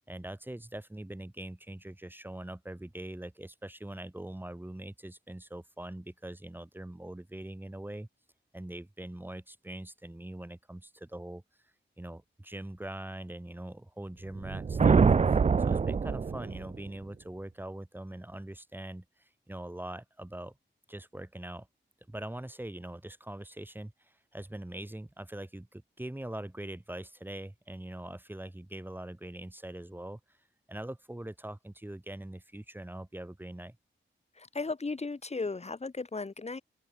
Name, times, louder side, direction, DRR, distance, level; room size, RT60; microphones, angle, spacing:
voice 1, 0.1-8.1 8.5-11.4 12.0-20.5 20.9-21.7 22.1-30.4 30.7-33.8, right 1 dB, 10° right, 4.3 m, -42 dB
sound 1, 14.4-16.9, right 5 dB, 35° right, 0.5 m, -25 dB
voice 2, 34.4-36.6, left 3 dB, 30° left, 5.6 m, -35 dB
open air
wide cardioid pair, 175°, 21 cm